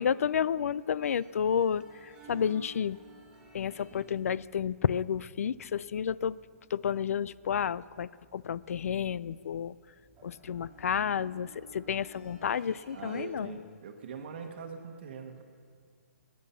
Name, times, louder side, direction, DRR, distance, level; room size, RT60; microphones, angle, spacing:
voice 1, 0.0-3.0 3.5-6.4 6.7-9.8 10.2-13.5, left 8 dB, 70° left, 20 dB, 0.4 m, -31 dB
sound 1, 1.0-13.3, right 3 dB, 10° right, 2.5 m, -55 dB
voice 2, 12.9-15.4, right 5 dB, 45° right, 4 dB, 1.2 m, -42 dB
19.5 x 9.6 x 5.7 m, 2.1 s
hypercardioid pair, 165°, 8 cm